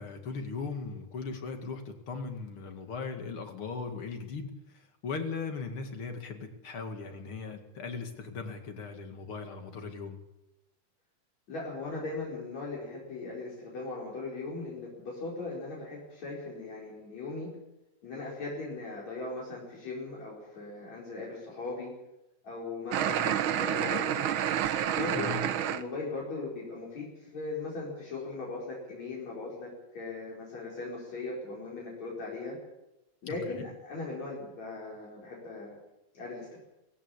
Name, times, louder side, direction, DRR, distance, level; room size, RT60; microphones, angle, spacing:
voice 1, 0.0-10.2 25.1-25.4 33.2-33.6, left 4 dB, 50° left, 5 dB, 2.8 m, -38 dB
voice 2, 11.5-17.5 18.0-21.9 22.4-24.3 24.9-25.3 25.7-32.6 33.2-35.8 36.1-36.6, left 3 dB, 65° left, -4 dB, 6.0 m, -38 dB
sound 1, 22.9-25.8, right 10 dB, 70° right, 1.2 m, -29 dB
18.5 x 16.5 x 8.6 m, 0.93 s
omnidirectional pair, 3.3 m